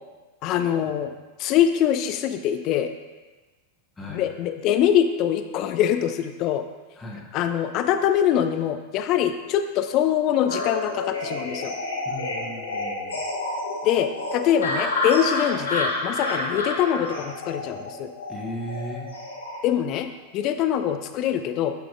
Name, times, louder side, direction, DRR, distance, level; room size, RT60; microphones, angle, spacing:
voice 1, 0.4-1.1 1.4-2.9 4.1-6.6 7.3-11.7 13.8-18.1 19.6-20.1 20.3-21.7, left 10 dB, 40° left, 8 dB, 0.5 m, -23 dB
voice 2, 4.0-4.3 6.9-7.3 12.0-13.2 18.3-19.1, equal, 10° left, -3 dB, 1.2 m, -36 dB
sound 1, 10.5-19.6, left 2 dB, 70° left, 1.4 m, -29 dB
8.4 x 7.5 x 2.5 m, 1.3 s
figure-of-eight pair, 90°, 0 cm